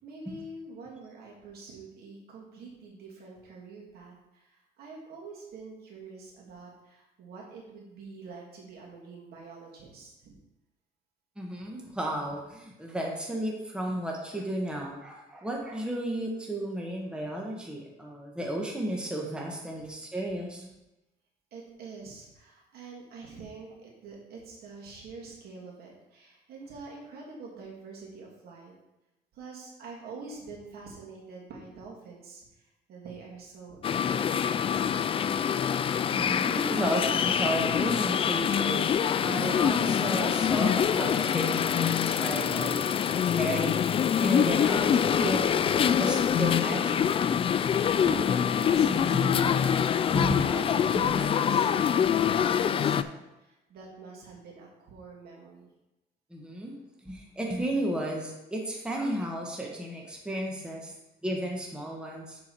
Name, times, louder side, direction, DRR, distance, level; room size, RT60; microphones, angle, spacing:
voice 1, 0.0-10.3 21.5-28.7 29.3-34.7 47.9-55.7, right 4 dB, 65° right, -3 dB, 2.7 m, -45 dB
voice 2, 11.4-20.7 36.1-39.0 39.2-43.7 44.2-47.0 48.7-49.3 50.1-51.3 56.3-56.8 57.0-60.9 61.2-62.4, right 1 dB, 5° right, -1 dB, 1.4 m, -33 dB
sound 1, 33.8-53.0, left 8 dB, 35° left, 0.3 m, -25 dB
7.2 x 6.2 x 4.4 m, 0.94 s
cardioid pair, 110°, 17 cm